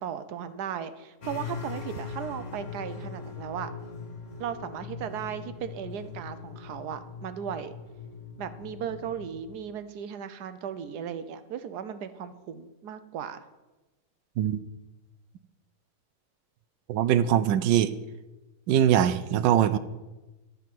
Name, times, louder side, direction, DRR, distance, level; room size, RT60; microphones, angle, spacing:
voice 1, 0.0-3.7 4.4-7.7 8.4-13.5, right 8 dB, 70° right, 11 dB, 1.2 m, -36 dB
sound 1, 1.2-9.6, left 5 dB, 45° left, 1.4 m, -41 dB
voice 2, 16.9-17.9 18.7-19.8, right 10 dB, 90° right, 14 dB, 1.3 m, -22 dB
11.0 x 5.2 x 7.6 m, 1.1 s
omnidirectional pair, 1.9 m